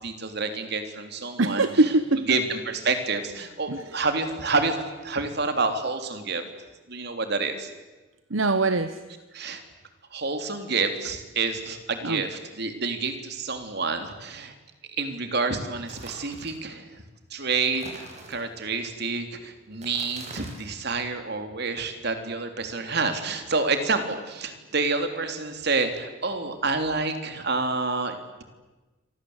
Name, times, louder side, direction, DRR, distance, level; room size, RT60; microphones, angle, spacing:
voice 1, 0.0-1.7 2.3-4.8 5.0-6.4 6.9-7.7 9.3-9.6 10.1-14.5 15.0-16.9 17.3-28.2, right 4 dB, 55° right, 7 dB, 3.4 m, -28 dB
voice 2, 1.4-2.4 3.7-3.8 8.3-9.0 12.0-12.2, right 2 dB, 70° right, 12 dB, 1.1 m, -23 dB
sound 1, 15.9-16.6 17.7-18.7 19.7-20.7, right 2 dB, 35° right, 6.6 m, -44 dB
29.0 x 25.0 x 8.2 m, 1.2 s
head